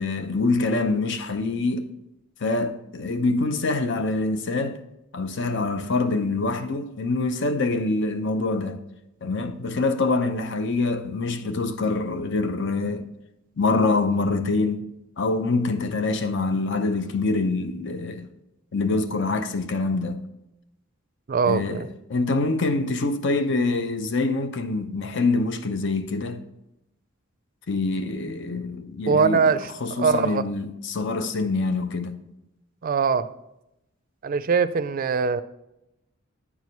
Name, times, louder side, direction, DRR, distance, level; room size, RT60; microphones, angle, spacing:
voice 1, 0.0-1.9 2.4-4.8 5.1-8.8 9.2-13.1 13.6-14.8 15.2-18.2 18.7-20.3 21.4-26.4 27.7-29.4 29.8-32.2, left 3 dB, 60° left, 0.7 m, -25 dB
voice 2, 21.3-21.9 29.1-29.7 30.0-30.5 32.8-33.3 34.2-35.4, right 5 dB, 45° right, 0.4 m, -22 dB
9.7 x 4.7 x 5.4 m
head